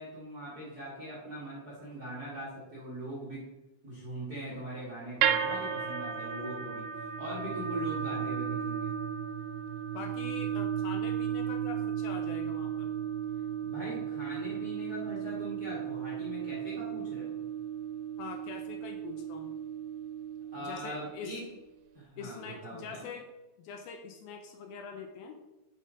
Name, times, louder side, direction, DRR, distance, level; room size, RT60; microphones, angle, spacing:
voice 1, 0.0-3.4 3.8-8.9 13.6-17.4 20.5-21.4 21.9-23.0, right 1 dB, 45° right, -7 dB, 1.3 m, -41 dB
sound 1, 5.2-21.4, right 8 dB, 85° right, 2.6 m, -34 dB
voice 2, 9.9-12.9 18.2-19.5 20.6-21.4 22.2-23.3 23.6-25.4, left 6 dB, 80° left, 4 dB, 2.3 m, -44 dB
5.7 x 5.4 x 5.0 m, 0.98 s
omnidirectional pair, 4.6 m